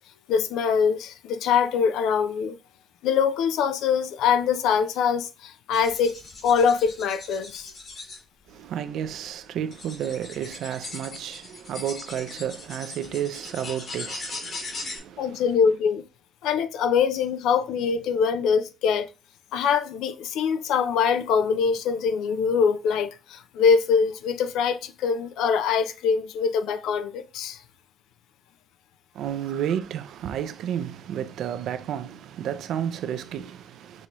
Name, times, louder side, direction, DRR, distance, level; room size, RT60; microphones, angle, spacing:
voice 1, 0.3-2.6 3.0-6.2 6.4-7.7 15.2-16.0 16.4-19.1 19.5-27.6, left 6 dB, 90° left, 0.4 m, -23 dB
sound 1, 5.7-8.2 9.0-9.1 9.7-15.0, left 3 dB, 55° left, 2.6 m, -39 dB
voice 2, 8.5-15.4 29.1-34.1, right 9 dB, 80° right, 0.5 m, -32 dB
6.1 x 2.7 x 3.0 m
cardioid pair, 90°, 0 cm